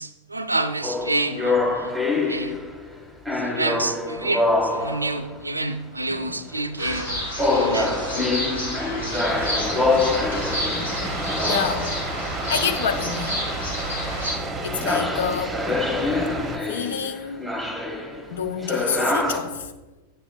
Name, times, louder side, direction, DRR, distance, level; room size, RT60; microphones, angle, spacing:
voice 1, 0.0-2.6 3.3-8.2, right 2 dB, 80° right, 0.5 m, -29 dB
sound 1, 0.8-2.9 3.3-5.3 6.1-6.6 7.4-12.8 14.7-19.4, left 2 dB, ahead, 1.2 m, -25 dB
sound 2, 6.8-14.3, equal, 75° left, 2.2 m, -30 dB
sound 3, 9.2-16.6, right 2 dB, 15° right, 0.8 m, -31 dB
voice 2, 11.4-11.9 12.5-13.4 14.6-15.6 16.7-17.4 18.3-19.7, left 6 dB, 60° left, 0.5 m, -27 dB
10.5 x 8.4 x 2.2 m
figure-of-eight pair, 90°, 0 cm